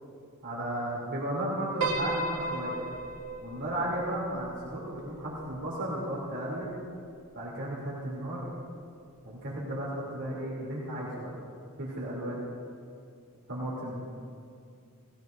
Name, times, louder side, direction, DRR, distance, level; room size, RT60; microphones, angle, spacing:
voice 1, 0.4-2.8 3.4-6.7 7.3-8.5 9.2-11.3 11.8-12.5 13.5-14.0, right 1 dB, 55° right, -6 dB, 3.0 m, -34 dB
Piano, 1.8-6.2, right 2 dB, 90° right, 1.5 m, -36 dB
19.0 x 16.5 x 2.6 m, 2.3 s
head